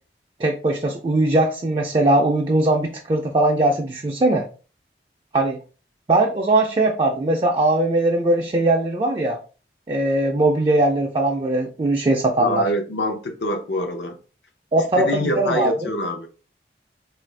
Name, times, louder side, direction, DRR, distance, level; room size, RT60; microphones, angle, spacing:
voice 1, 0.4-4.5 5.3-5.6 6.1-9.4 9.9-12.7 14.7-15.9, right 2 dB, 30° right, 1 dB, 0.3 m, -20 dB
voice 2, 12.4-14.2 15.0-16.3, left 1 dB, 80° left, 5 dB, 0.7 m, -25 dB
3.9 x 2.5 x 3.2 m, 0.36 s
head